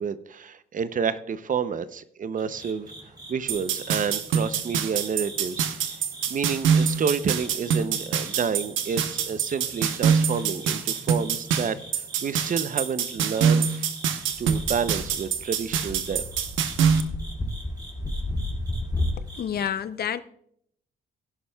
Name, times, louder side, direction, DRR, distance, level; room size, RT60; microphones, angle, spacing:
voice 1, 0.0-2.9 3.3-6.0 6.3-13.9 14.4-16.2, right 6 dB, 40° right, 0.7 m, -29 dB
sound 1, 2.4-19.7, right 1 dB, 20° right, 2.3 m, -46 dB
sound 2, 3.5-17.0, right 7 dB, 80° right, 1.0 m, -25 dB
sound 3, 14.3-19.2, left 1 dB, 20° left, 2.6 m, -32 dB
voice 2, 19.4-20.2, left 9 dB, 50° left, 0.6 m, -28 dB
17.0 x 11.0 x 2.3 m
cardioid pair, 90°, 20 cm